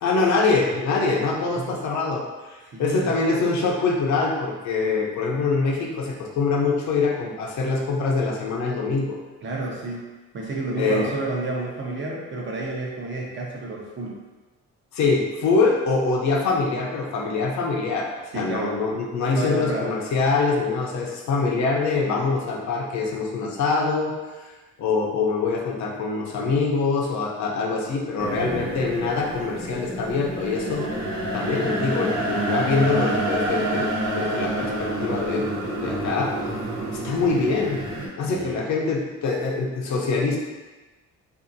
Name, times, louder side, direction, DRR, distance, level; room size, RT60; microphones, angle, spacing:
voice 1, 0.0-9.2 10.7-11.1 14.9-24.1 24.4-24.5 24.8-31.0 31.3-35.5 35.8-36.3 36.9-37.8 38.2-40.4, left 4 dB, 70° left, -1 dB, 0.6 m, -24 dB
voice 2, 2.7-3.1 9.4-10.0 10.3-14.2 18.3-18.8 19.3-19.9 38.3-38.6, right 2 dB, 40° right, -3 dB, 0.7 m, -30 dB
sound 1, 28.2-38.1, right 1 dB, 65° right, 1.0 m, -28 dB
2.7 x 2.4 x 2.6 m, 1.2 s
cardioid pair, 90°, 30 cm